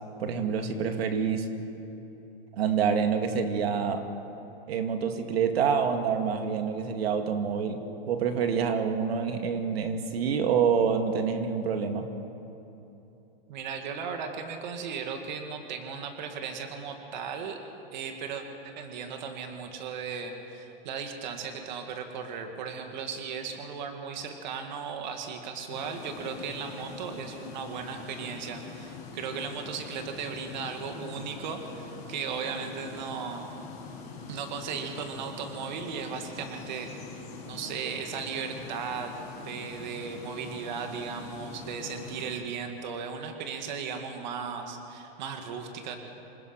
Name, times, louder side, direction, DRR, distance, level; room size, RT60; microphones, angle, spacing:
voice 1, 0.2-1.5 2.6-4.1 4.7-12.1, right 6 dB, 80° right, 6 dB, 2.2 m, -27 dB
voice 2, 13.5-17.6 17.9-33.5 34.3-37.2 37.4-46.0, right 6 dB, 50° right, 4 dB, 2.2 m, -36 dB
sound 1, 25.7-42.3, left 4 dB, 25° left, 6.0 m, -43 dB
27.5 x 20.0 x 6.0 m, 3.0 s
supercardioid pair, 180°, 30 cm